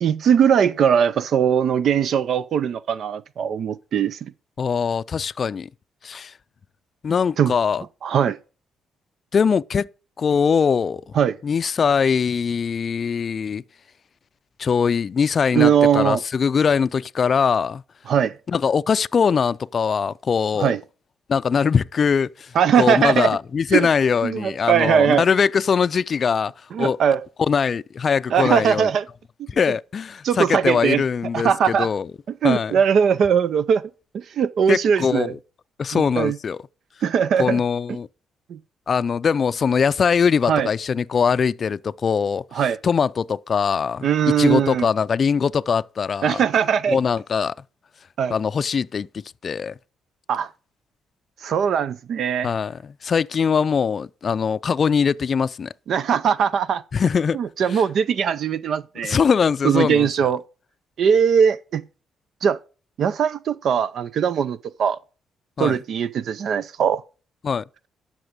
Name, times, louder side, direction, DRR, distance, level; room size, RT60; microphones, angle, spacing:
voice 1, 0.0-4.2 7.4-7.5 8.0-8.4 11.2-11.4 15.5-16.2 18.1-18.3 20.6-20.8 22.6-23.3 23.7-23.9 24.2-25.2 26.7-27.2 28.3-29.0 30.2-31.0 31.3-31.9 32.4-33.8 34.1-35.3 35.9-36.3 37.0-37.6 38.5-38.6 40.5-40.7 42.5-42.8 44.0-44.9 46.2-47.0 48.2-48.3 50.3-50.5 51.4-52.5 55.9-56.8 57.3-59.2 59.6-60.4 61.0-61.8 62.4-62.6 63.0-65.0 65.6-67.0, right 8 dB, 65° right, 0.5 m, -20 dB
voice 2, 4.6-5.7 6.0-6.3 7.0-7.8 9.3-9.9 10.2-11.1 11.4-13.6 14.6-17.8 18.5-20.8 21.3-27.0 27.4-28.9 29.5-32.1 32.4-32.7 34.7-35.4 35.8-36.6 37.4-38.1 38.9-46.4 46.9-47.5 48.3-49.8 52.4-55.7 56.9-57.4 57.6-57.8 59.0-60.3 65.6-65.8 67.4-67.6, left 6 dB, 45° left, 0.4 m, -22 dB
12.0 x 6.1 x 5.0 m
cardioid pair, 90°, 0 cm